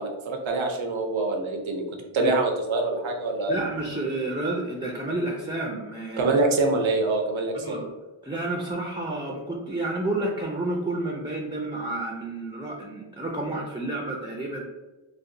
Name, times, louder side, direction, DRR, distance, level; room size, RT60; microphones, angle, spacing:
voice 1, 0.0-3.6 6.2-7.8, right 3 dB, 80° right, 2 dB, 0.7 m, -25 dB
voice 2, 3.5-6.4 7.5-7.9 8.2-14.6, right 2 dB, 10° right, -1 dB, 0.4 m, -30 dB
4.1 x 2.1 x 2.6 m, 1.1 s
wide cardioid pair, 75°, 47 cm